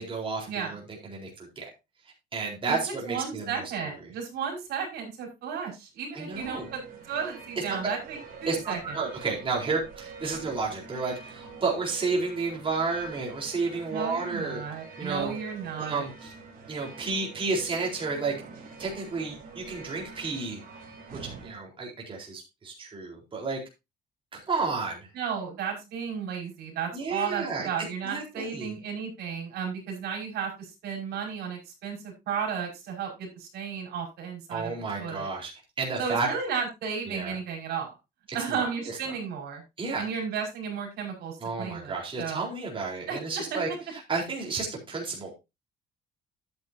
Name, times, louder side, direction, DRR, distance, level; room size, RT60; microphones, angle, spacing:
voice 1, 0.0-1.7 2.3-3.6 6.1-6.7 8.5-14.6 15.0-15.3 15.8-16.3 16.7-18.3 18.8-20.6 21.2-23.6 24.3-25.1 26.9-27.7 28.0-28.7 34.5-35.5 35.8-36.3 37.1-37.4 38.5-39.0 39.8-40.1 41.4-45.3, right 4 dB, 30° right, -2 dB, 4.2 m, -31 dB
voice 2, 2.7-6.8 7.1-9.0 13.9-16.0 25.1-34.7 35.0-35.3 36.0-37.9 38.3-39.6 40.0-42.5 43.1-43.6, right 6 dB, 80° right, 1 dB, 5.2 m, -34 dB
sound 1, 6.3-21.5, right 5 dB, 60° right, 3.8 m, -46 dB
12.0 x 8.8 x 2.8 m, 0.24 s
cardioid pair, 110°, 17 cm